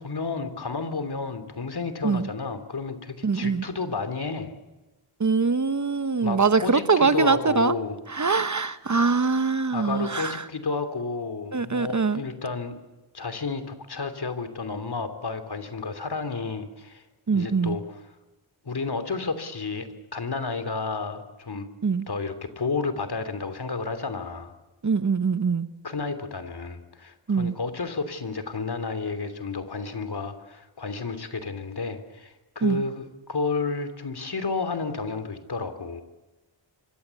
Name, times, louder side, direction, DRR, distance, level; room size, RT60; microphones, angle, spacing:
voice 1, 0.0-4.5 6.2-8.0 9.7-12.7 13.1-17.0 17.3-18.0 18.6-21.7 22.1-24.5 25.8-36.0, left 4 dB, 55° left, 10 dB, 3.2 m, -31 dB
voice 2, 3.2-3.6 5.2-7.8 8.1-10.4 11.5-12.2 17.3-17.8 21.8-22.1 24.8-25.7 27.3-27.6 32.6-32.8, right 4 dB, 40° right, 13 dB, 1.0 m, -23 dB
25.5 x 25.0 x 8.4 m, 1.1 s
wide cardioid pair, 95°, 47 cm